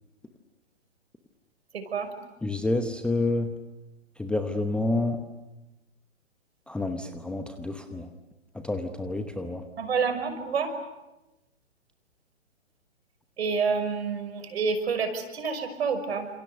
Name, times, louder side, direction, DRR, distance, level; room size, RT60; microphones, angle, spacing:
voice 1, 1.7-2.1 9.8-10.7 13.4-16.3, right 5 dB, 60° right, 8 dB, 5.7 m, -28 dB
voice 2, 2.4-3.5 4.2-5.2 6.7-8.1 8.5-9.6, left 2 dB, 5° left, 7 dB, 0.9 m, -28 dB
29.0 x 27.5 x 6.8 m, 0.99 s
figure-of-eight pair, 130°, 36 cm